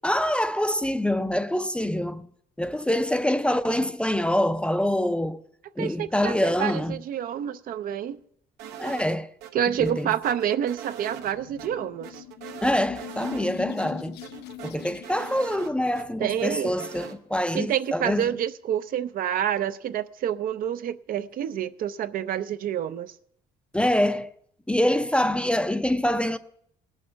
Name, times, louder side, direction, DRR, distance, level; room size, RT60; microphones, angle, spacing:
voice 1, 0.0-2.3 2.6-5.4 5.8-7.0 8.8-9.3 9.8-10.1 12.6-14.2 14.6-18.2 23.7-24.3 24.7-26.4, left 1 dB, 5° left, 0.5 m, -25 dB
voice 2, 5.8-8.2 9.5-12.2 16.2-16.8 17.5-23.1, right 10 dB, 55° right, 0.5 m, -28 dB
sound 1, 8.6-9.5 9.8-11.3 11.6-11.7 12.0-13.5 13.8-13.9 14.2-16.0 16.4-17.2, right 9 dB, 85° right, 1.0 m, -41 dB
sound 2, 11.0-16.4, left 12 dB, 75° left, 0.5 m, -42 dB
18.5 x 6.5 x 5.6 m
cardioid pair, 110°, 17 cm